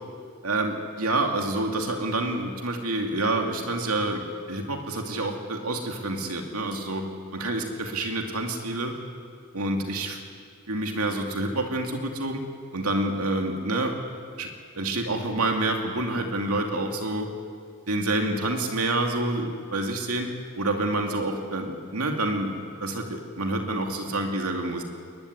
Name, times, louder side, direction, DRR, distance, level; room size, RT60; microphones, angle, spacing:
voice 1, 0.4-4.2 4.5-7.1 7.3-8.9 9.5-10.2 10.7-12.4 12.7-13.9 14.4-14.5 14.8-17.3 17.9-20.3 20.6-24.8, right 2 dB, 75° right, 3 dB, 2.5 m, -28 dB
23.0 x 20.0 x 9.7 m, 2.1 s
head